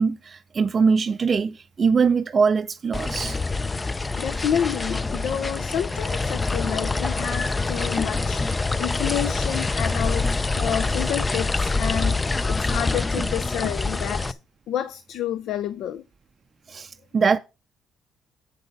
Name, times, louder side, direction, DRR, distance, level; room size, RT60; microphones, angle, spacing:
voice 1, 0.0-3.4 13.2-13.3 16.7-17.4, right 5 dB, 40° right, 0.4 m, -22 dB
sound 1, 2.9-14.3, left 3 dB, 20° left, 0.4 m, -25 dB
voice 2, 4.2-8.4 8.8-14.3 14.7-16.0, left 10 dB, 70° left, 0.5 m, -29 dB
8.0 x 6.1 x 5.3 m
supercardioid pair, 80°, 0 cm